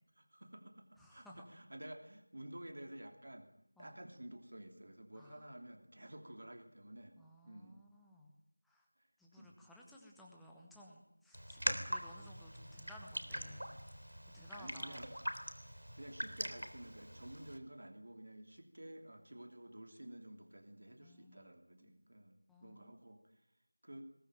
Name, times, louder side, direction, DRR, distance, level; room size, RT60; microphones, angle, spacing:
voice 1, 0.2-3.5 3.8-7.2 7.4-7.8 9.4-9.6 14.5-15.1 16.0-23.2 23.8-24.0, right 1 dB, 45° right, 6 dB, 3.0 m, -52 dB
voice 2, 1.0-1.4 3.8-3.9 5.1-5.6 7.2-8.3 8.7-8.9 9.2-13.7 14.3-15.0 21.0-21.5 21.8-21.9 22.5-22.9, left 1 dB, ahead, -2 dB, 1.0 m, -58 dB
Raindrop, 11.3-17.6, equal, 80° right, 3.6 m, -43 dB
21.0 x 19.0 x 9.2 m, 0.79 s
figure-of-eight pair, 175°, 0 cm